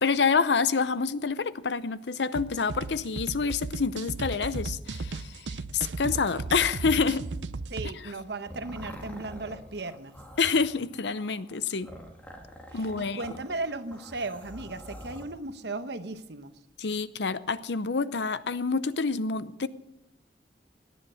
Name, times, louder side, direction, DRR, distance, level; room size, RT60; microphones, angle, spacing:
voice 1, 0.0-7.3 7.9-8.1 10.4-11.9 12.7-13.2 16.8-19.7, left 5 dB, 75° left, 16 dB, 0.7 m, -27 dB
sound 1, 2.4-7.9, right 3 dB, 90° right, 0.6 m, -35 dB
voice 2, 7.7-10.2 12.7-16.5, right 2 dB, 70° right, 10 dB, 1.0 m, -36 dB
sound 2, 8.0-15.2, equal, 10° left, 1.9 m, -46 dB
18.0 x 10.0 x 6.3 m, 0.86 s
head